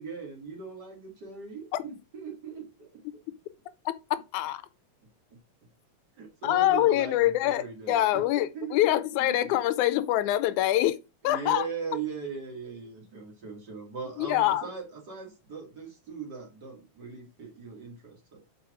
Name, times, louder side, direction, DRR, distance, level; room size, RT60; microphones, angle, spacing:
voice 1, 0.0-3.0 6.2-9.6 11.2-18.4, right 5 dB, 35° right, 2.5 m, -39 dB
voice 2, 6.4-11.0 11.2-11.7 14.2-14.7, left 14 dB, 80° left, 2.0 m, -25 dB
6.0 x 4.7 x 4.9 m
omnidirectional pair, 3.4 m